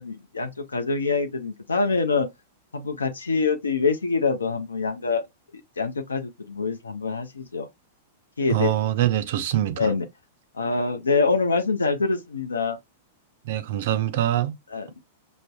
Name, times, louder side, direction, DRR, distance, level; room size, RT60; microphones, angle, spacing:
voice 1, 0.0-2.3 2.7-5.2 5.5-7.7 8.4-8.8 9.8-10.1 10.5-12.8 14.7-15.0, left 4 dB, 80° left, 0.5 m, -25 dB
voice 2, 8.5-9.9 13.5-14.6, right 12 dB, 55° right, 0.4 m, -24 dB
5.2 x 2.0 x 2.3 m
figure-of-eight pair, 100°, 0 cm